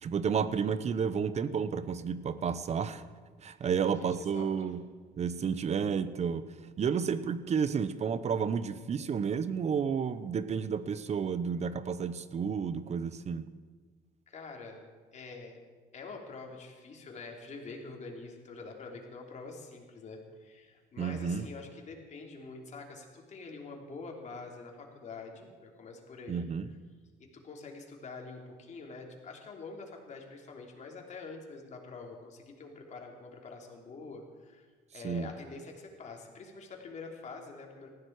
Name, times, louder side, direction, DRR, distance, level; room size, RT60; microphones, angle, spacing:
voice 1, 0.0-3.0 3.4-4.8 5.2-6.5 6.8-13.4 21.0-21.4 26.3-26.7 35.0-35.3, right 6 dB, 40° right, 14 dB, 0.9 m, -31 dB
voice 2, 3.6-4.1 4.3-4.7 14.3-14.8 15.1-15.6 15.9-26.5 27.3-34.6 34.9-37.9, left 4 dB, 45° left, 1 dB, 3.3 m, -46 dB
19.5 x 15.0 x 4.8 m, 1.4 s
cardioid pair, 110°, 17 cm